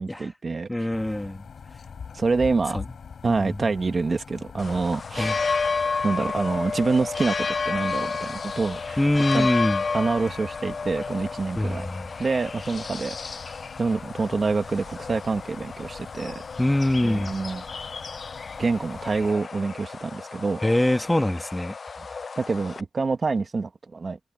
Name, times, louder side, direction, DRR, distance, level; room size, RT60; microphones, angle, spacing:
voice 1, 0.0-0.7 2.1-2.8 3.2-5.3 6.0-7.3 7.6-9.0 9.3-9.5 9.9-11.9 12.2-13.2 13.8-16.4 17.0-17.6 18.6-20.6 22.3-24.2, right 4 dB, 50° right, 1.7 m, -26 dB
voice 2, 0.7-1.4 2.7-2.8 3.2-3.6 5.2-5.6 9.0-9.8 11.6-12.1 16.6-17.3 20.6-21.7, left 1 dB, 10° left, 1.9 m, -24 dB
sound 1, 0.9-19.3, left 6 dB, 80° left, 6.5 m, -44 dB
sound 2, 4.6-22.8, left 4 dB, 55° left, 0.5 m, -32 dB
wide cardioid pair, 100°, 0 cm